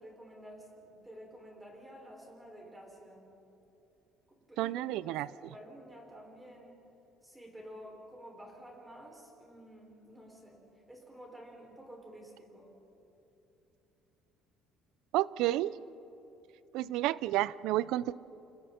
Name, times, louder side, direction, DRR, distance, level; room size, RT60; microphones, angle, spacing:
voice 1, 0.0-3.3 4.5-6.8 7.2-12.7, equal, 10° right, -1 dB, 6.2 m, -51 dB
voice 2, 4.6-5.3 15.1-15.7 16.7-18.1, right 15 dB, 80° right, 19 dB, 0.5 m, -30 dB
29.0 x 27.5 x 4.5 m, 2.9 s
cardioid pair, 125°, 0 cm